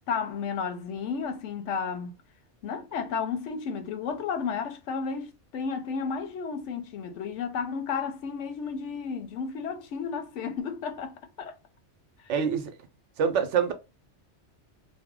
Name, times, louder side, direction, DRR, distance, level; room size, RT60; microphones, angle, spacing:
voice 1, 0.0-2.1 2.6-11.5, left 5 dB, 90° left, 0.9 m, -32 dB
voice 2, 12.3-12.7 13.2-13.7, right 7 dB, 90° right, 0.9 m, -25 dB
2.6 x 2.1 x 3.5 m
omnidirectional pair, 1.2 m